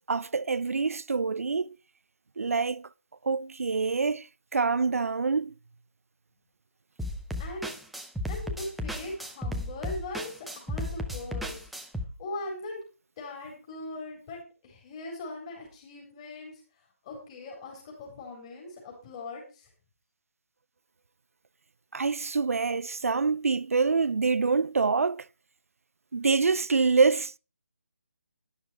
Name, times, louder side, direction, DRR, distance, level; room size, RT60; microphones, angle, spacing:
voice 1, 0.1-1.7 2.4-2.9 3.2-4.2 4.5-5.5 21.9-25.2 26.1-27.3, right 4 dB, 75° right, 0.5 m, -26 dB
sound 1, 7.0-12.1, left 1 dB, ahead, 0.5 m, -34 dB
voice 2, 7.4-7.7 8.3-11.7 12.2-12.8 13.2-19.7, left 2 dB, 20° left, 4.1 m, -40 dB
11.5 x 11.5 x 4.6 m
figure-of-eight pair, 170°, 8 cm